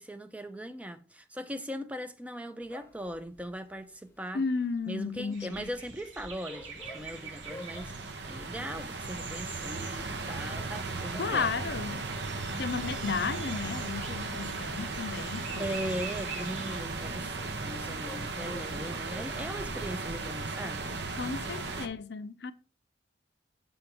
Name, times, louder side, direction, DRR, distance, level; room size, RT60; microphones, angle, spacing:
voice 1, 0.0-4.4 4.9-11.5 15.6-20.9, equal, 5° right, 0.5 m, -39 dB
sound 1, 2.6-21.5, left 1 dB, 10° left, 0.9 m, -55 dB
voice 2, 4.3-5.7 11.2-12.1 12.6-15.7 21.2-22.5, left 5 dB, 60° left, 0.5 m, -33 dB
sound 2, 5.3-16.8, right 5 dB, 75° right, 1.6 m, -47 dB
sound 3, 6.7-21.9, right 3 dB, 60° right, 0.9 m, -36 dB
7.7 x 3.4 x 5.8 m
head